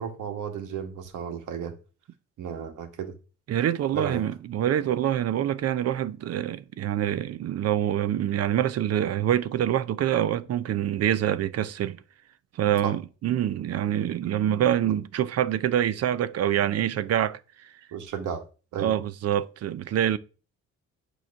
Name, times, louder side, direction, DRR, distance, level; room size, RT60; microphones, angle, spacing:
voice 1, 0.0-1.7 2.4-3.1 3.9-4.2 12.8-12.9 14.8-14.9 17.9-18.4 18.7-18.9, right 7 dB, 80° right, 1.4 m, -33 dB
voice 2, 3.5-12.0 12.5-17.7 18.8-20.2, right 11 dB, 55° right, 0.5 m, -26 dB
8.3 x 3.1 x 6.2 m
cardioid pair, 90°, 30 cm